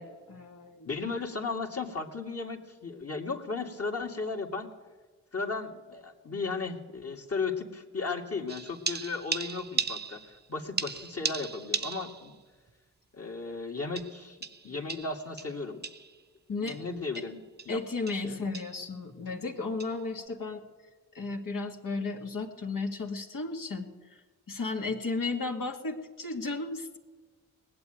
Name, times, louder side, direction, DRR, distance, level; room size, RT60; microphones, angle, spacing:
voice 1, 0.0-0.9 16.5-16.8 17.7-20.6 21.1-23.9 24.5-27.0, left 3 dB, 60° left, 2 dB, 2.1 m, -34 dB
voice 2, 0.9-4.7 5.3-12.3 13.1-14.4 14.6-15.8 16.6-17.4 17.7-18.4, left 4 dB, 40° left, 1 dB, 2.4 m, -35 dB
sound 1, 8.5-10.5 10.8-12.3 12.7-12.8 14.0-16.2 16.7-16.8 17.1-17.3 17.6-17.8 18.1-18.3 18.5-18.8 19.8-20.0, right 5 dB, 25° right, 0.9 m, -36 dB
19.0 x 7.9 x 9.2 m, 1.4 s
supercardioid pair, 40°, 37 cm